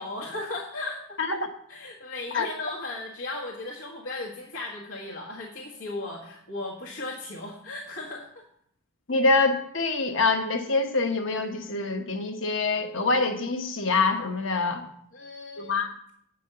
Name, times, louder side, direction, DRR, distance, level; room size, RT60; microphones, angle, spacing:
voice 1, 0.0-1.4 1.7-8.4 15.1-15.8, left 2 dB, 90° left, -4 dB, 1.6 m, -36 dB
voice 2, 9.1-14.8 15.6-15.9, left 3 dB, 65° left, 6 dB, 1.1 m, -25 dB
8.6 x 5.4 x 6.7 m, 0.69 s
head